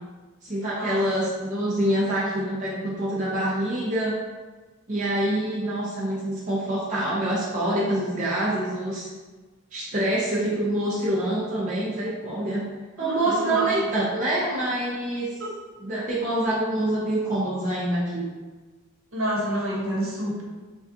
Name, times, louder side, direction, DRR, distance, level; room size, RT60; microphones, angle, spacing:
voice 1, 0.4-4.1 4.9-9.1 9.7-12.6 13.0-15.3 15.8-18.3, right 1 dB, 35° right, -7 dB, 0.6 m, -26 dB
voice 2, 13.0-13.7 15.4-15.5 19.1-20.4, right 1 dB, 65° right, -4 dB, 1.1 m, -28 dB
6.0 x 2.3 x 2.8 m, 1.3 s
head